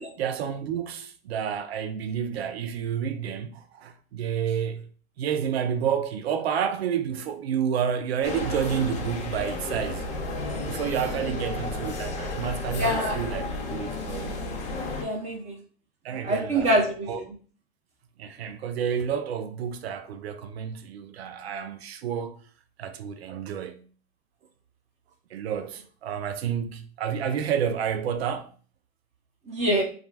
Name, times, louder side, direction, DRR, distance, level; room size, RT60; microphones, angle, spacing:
voice 1, 0.2-4.9 5.2-10.1 10.7-14.4 16.0-17.2 18.2-22.4 22.8-23.8 25.3-28.5, right 8 dB, 75° right, 0.5 m, -30 dB
sound 1, 8.2-15.0, left 2 dB, 20° left, 0.5 m, -32 dB
voice 2, 11.2-11.7 12.8-13.2 15.0-15.6 16.1-17.2 29.5-29.8, right 1 dB, 20° right, 0.7 m, -26 dB
2.4 x 2.0 x 3.4 m
hypercardioid pair, 115°, 32 cm